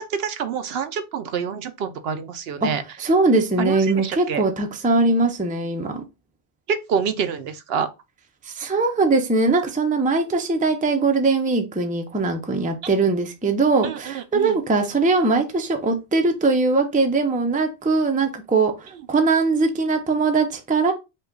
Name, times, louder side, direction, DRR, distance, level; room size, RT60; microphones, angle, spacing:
voice 1, 0.0-2.8 3.6-4.4 6.7-7.9 13.8-14.6, right 7 dB, 70° right, 0.8 m, -27 dB
voice 2, 3.0-6.0 8.4-20.9, right 3 dB, 10° right, 0.5 m, -21 dB
5.4 x 2.3 x 3.7 m
omnidirectional pair, 1.1 m